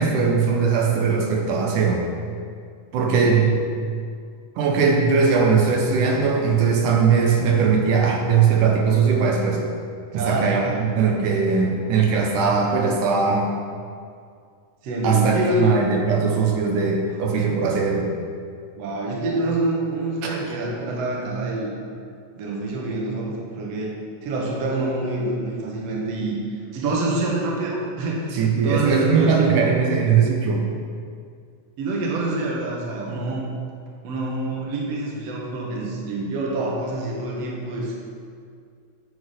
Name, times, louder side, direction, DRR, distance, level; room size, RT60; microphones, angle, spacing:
voice 1, 0.0-2.1 2.9-3.6 4.6-9.6 10.1-13.5 15.0-18.1 20.2-20.3 28.3-30.6, right 5 dB, 85° right, 0 dB, 2.5 m, -20 dB
voice 2, 3.0-3.6 10.1-10.9 14.8-15.7 18.8-21.7 22.4-26.4 26.7-28.4 28.6-29.7 31.8-33.5 34.0-37.9, right 2 dB, 60° right, -3 dB, 2.3 m, -26 dB
9.3 x 6.2 x 5.1 m, 2.2 s
omnidirectional pair, 3.6 m